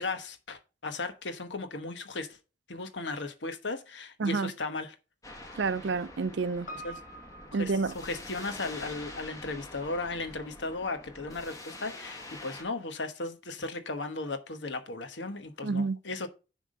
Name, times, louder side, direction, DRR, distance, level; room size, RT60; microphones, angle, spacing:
voice 1, 0.0-2.4 2.7-4.9 6.8-7.0 7.6-16.3, left 3 dB, 75° left, 1.2 m, -36 dB
voice 2, 4.2-4.5 5.6-6.7 7.5-7.9 15.6-16.0, right 4 dB, 75° right, 0.5 m, -29 dB
sound 1, 5.2-12.6, left 2 dB, 20° left, 1.5 m, -46 dB
Piano, 6.7-11.2 11.5-11.6, right 1 dB, 45° left, 1.3 m, -49 dB
10.0 x 3.7 x 5.0 m
head